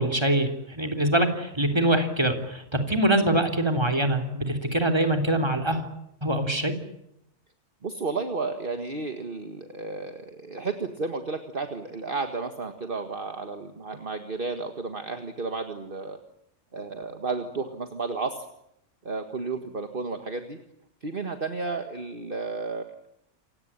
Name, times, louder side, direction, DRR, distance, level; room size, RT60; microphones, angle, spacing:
voice 1, 0.0-5.9 6.2-6.7, right 1 dB, 20° right, 5 dB, 3.4 m, -24 dB
voice 2, 7.8-16.2 16.7-18.5 19.1-20.6 21.0-22.9, right 4 dB, 45° right, 7 dB, 1.9 m, -32 dB
28.5 x 17.0 x 10.0 m, 0.79 s
omnidirectional pair, 1.3 m